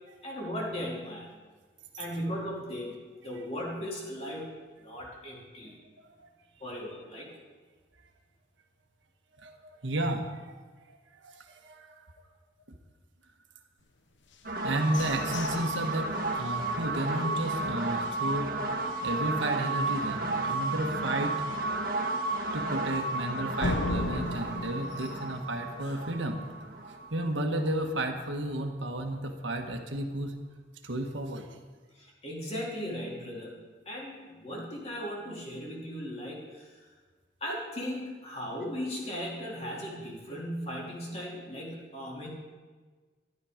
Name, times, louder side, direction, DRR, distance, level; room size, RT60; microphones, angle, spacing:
voice 1, 0.2-1.3 2.0-4.5 4.8-5.7 6.6-7.3 31.9-36.8 37.4-42.3, equal, 35° left, -3 dB, 2.9 m, -37 dB
voice 2, 9.3-10.5 10.9-11.0 11.2-12.0 14.6-18.5 19.0-21.4 22.5-26.4 27.1-30.3 30.8-31.5, right 1 dB, 85° right, 3 dB, 1.5 m, -32 dB
sound 1, 14.3-18.2 18.7-18.8 19.1-19.5 19.9-20.0 20.5-20.6 23.6-26.3, left 1 dB, 80° left, 0.9 m, -37 dB
sound 2, 14.4-28.1, right 2 dB, 50° right, 1.5 m, -33 dB
12.0 x 11.5 x 5.1 m, 1.4 s
head